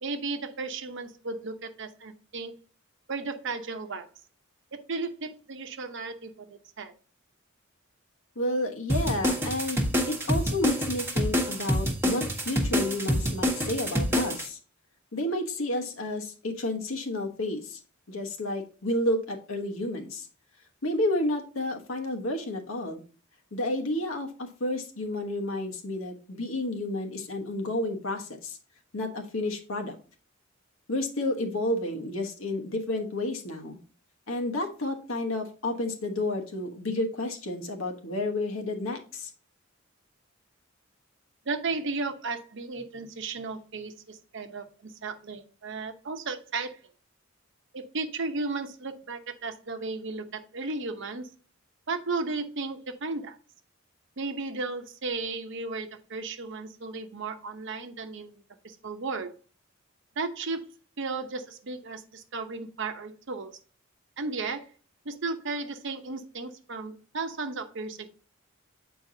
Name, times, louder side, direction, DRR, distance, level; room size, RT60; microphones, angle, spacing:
voice 1, 0.0-2.5 3.1-4.1 4.9-6.9 41.5-46.8 47.7-51.3 51.9-53.4 54.2-59.3 60.2-60.7 61.0-63.5 64.2-64.7 65.0-68.1, right 3 dB, 65° right, 0.8 m, -34 dB
voice 2, 8.4-14.6 15.1-17.8 18.1-20.3 20.8-23.0 23.5-28.6 28.9-30.0 30.9-33.8 34.3-39.3, left 1 dB, 80° left, 1.2 m, -31 dB
sound 1, 8.9-14.5, equal, 10° right, 1.1 m, -26 dB
8.1 x 4.6 x 2.7 m
head